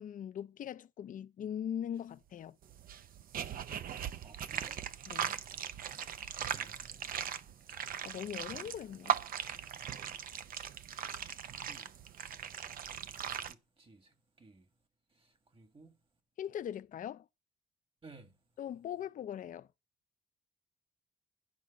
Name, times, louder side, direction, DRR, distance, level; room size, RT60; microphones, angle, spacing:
voice 1, 0.0-2.6 5.1-5.4 8.0-9.2 16.4-17.3 18.6-19.7, left 9 dB, 65° left, 0.5 m, -40 dB
sound 1, 2.6-13.5, right 9 dB, 80° right, 0.7 m, -39 dB
voice 2, 4.2-4.8 6.5-7.3 11.7-11.9 13.5-14.6 15.5-16.0 18.0-18.3, right 3 dB, 40° right, 2.0 m, -57 dB
11.0 x 4.9 x 7.2 m
cardioid pair, 80°, 15 cm